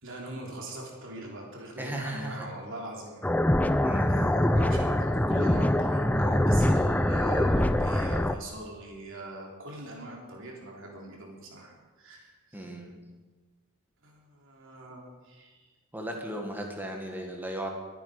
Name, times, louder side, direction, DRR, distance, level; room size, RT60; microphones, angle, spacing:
voice 1, 0.0-3.3 4.1-12.3 14.0-15.7, right 2 dB, 60° right, -1 dB, 3.4 m, -42 dB
voice 2, 1.8-2.5 3.8-4.2 12.5-13.0 15.9-17.7, right 1 dB, 10° right, 2 dB, 1.8 m, -36 dB
sound 1, 3.2-8.3, left 1 dB, 5° left, 0.4 m, -24 dB
22.5 x 9.4 x 5.0 m, 1.3 s
head